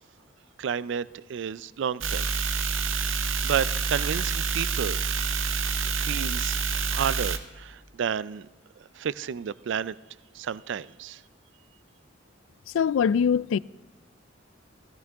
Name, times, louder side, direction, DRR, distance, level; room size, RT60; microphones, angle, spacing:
voice 1, 0.6-2.3 2.9-5.0 5.9-8.5 8.8-10.0 10.3-11.2, right 7 dB, 65° right, 0.3 m, -31 dB
sound 1, 2.0-7.4, right 5 dB, 80° right, 0.8 m, -27 dB
voice 2, 12.7-13.6, left 7 dB, 75° left, 0.3 m, -22 dB
15.0 x 13.5 x 3.5 m
head